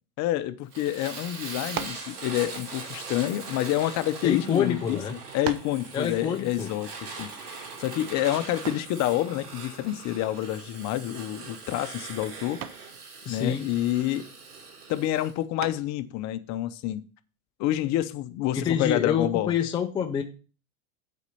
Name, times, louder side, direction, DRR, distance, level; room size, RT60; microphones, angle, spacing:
voice 1, 0.2-5.0 5.3-12.6 13.3-14.3 14.9-17.0 17.6-19.5, left 14 dB, 40° left, 0.7 m, -28 dB
Fire, 0.7-15.3, right 4 dB, 90° right, 3.1 m, -41 dB
sound 1, 1.7-2.1 3.1-4.2 4.9-5.0 5.4-5.8 8.6-9.0 10.9-11.3 11.6-12.0 12.6-12.9 15.6-16.1, right 9 dB, 30° right, 0.6 m, -37 dB
voice 2, 4.2-5.2 5.9-6.7 13.2-13.7 18.5-20.2, left 7 dB, 10° left, 0.3 m, -27 dB
8.1 x 4.3 x 6.9 m
supercardioid pair, 125°, 45 cm